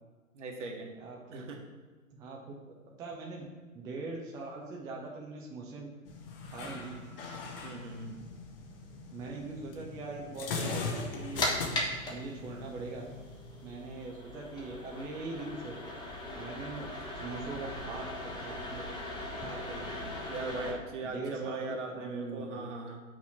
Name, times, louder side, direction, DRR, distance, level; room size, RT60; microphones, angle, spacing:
voice 1, 0.3-0.9 1.3-1.6 7.6-8.1 20.3-23.0, right 3 dB, 60° right, 1 dB, 1.7 m, -39 dB
voice 2, 1.0-1.4 2.1-2.6 3.0-3.4 3.7-5.9 6.4-7.0 9.1-11.5 12.1-13.0 13.6-15.8 16.3-16.9 17.1-18.8 19.4-20.0 21.0-22.7, right 3 dB, 10° right, -2 dB, 0.5 m, -41 dB
sound 1, 6.1-14.1, left 4 dB, 40° left, 1.1 m, -40 dB
sound 2, 11.0-20.7, left 1 dB, 10° left, 1.0 m, -39 dB
6.0 x 4.2 x 6.1 m, 1.3 s
figure-of-eight pair, 115°, 41 cm